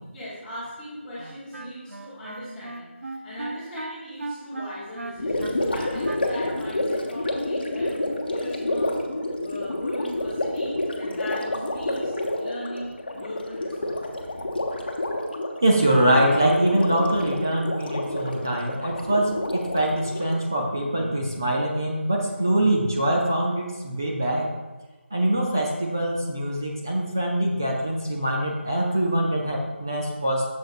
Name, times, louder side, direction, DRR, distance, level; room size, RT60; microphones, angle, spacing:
voice 1, 0.0-14.5, left 1 dB, 5° left, -12 dB, 1.0 m, -39 dB
Wind instrument woodwind instrument, 1.2-6.8, right 2 dB, 85° right, 0.8 m, -37 dB
Gurgling, 5.2-20.4, left 1 dB, 50° left, 0.9 m, -29 dB
voice 2, 15.6-24.5 25.1-30.4, right 1 dB, 15° right, -2 dB, 0.4 m, -23 dB
7.8 x 6.6 x 2.4 m, 1.2 s
figure-of-eight pair, 175°, 7 cm